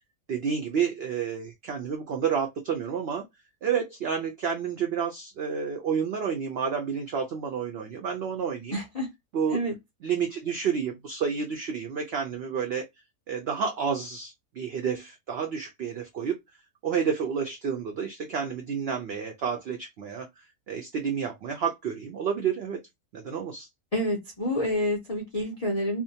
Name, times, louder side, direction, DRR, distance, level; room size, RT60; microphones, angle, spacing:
voice 1, 0.3-3.2 3.6-8.8 9.3-9.6 10.0-12.8 13.3-16.4 16.8-20.3 20.7-22.8 23.1-23.7, right 7 dB, 80° right, 0.5 m, -30 dB
voice 2, 8.7-9.1 9.5-9.7 23.9-26.0, equal, 70° left, 0.3 m, -28 dB
2.6 x 2.1 x 2.6 m
omnidirectional pair, 1.6 m